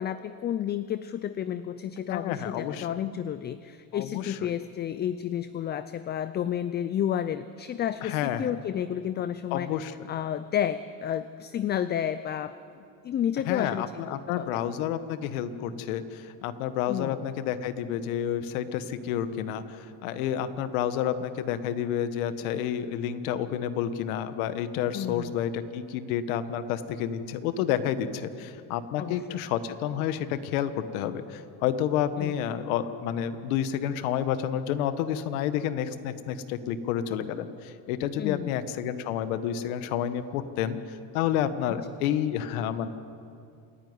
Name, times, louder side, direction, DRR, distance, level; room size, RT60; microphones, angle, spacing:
voice 1, 0.0-12.6 13.0-14.6 16.9-17.2 24.9-25.3 29.0-29.4 32.2-32.3 38.2-38.6, left 10 dB, 25° left, 14 dB, 0.4 m, -31 dB
voice 2, 2.1-2.9 3.9-4.4 8.0-8.5 9.5-10.1 13.4-42.9, left 9 dB, 80° left, 12 dB, 1.4 m, -30 dB
27.5 x 10.5 x 9.6 m, 2.5 s
supercardioid pair, 120°, 41 cm